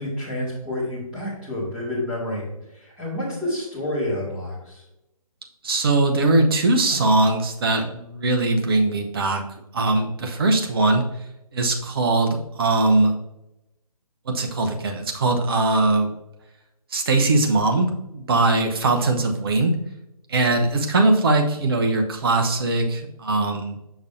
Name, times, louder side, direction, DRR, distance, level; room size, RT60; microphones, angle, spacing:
voice 1, 0.0-2.4 2.7-4.8, left 1 dB, 5° right, -10 dB, 2.5 m, -29 dB
voice 2, 5.6-9.4 9.7-11.0 11.5-13.1 14.3-16.1 16.9-19.8 20.3-23.8, right 2 dB, 40° right, 4 dB, 1.0 m, -21 dB
6.8 x 6.1 x 2.7 m, 0.90 s
figure-of-eight pair, 145°, 19 cm